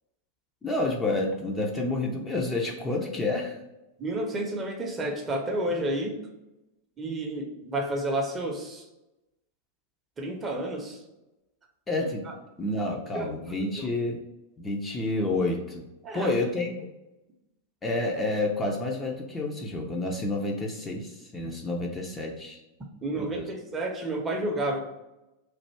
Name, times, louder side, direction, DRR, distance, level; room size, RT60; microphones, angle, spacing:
voice 1, 0.6-3.5 11.9-12.2 12.6-14.2 14.6-15.9 16.1-16.7 17.8-22.6 23.2-23.4, left 2 dB, 15° left, 0 dB, 0.6 m, -29 dB
voice 2, 4.0-6.2 7.0-8.8 10.2-11.0 12.2-12.3 12.8-13.9 16.0-16.4 23.0-24.8, right 1 dB, 20° right, 2 dB, 0.7 m, -31 dB
3.2 x 2.5 x 4.4 m, 0.96 s
figure-of-eight pair, 90°, 0 cm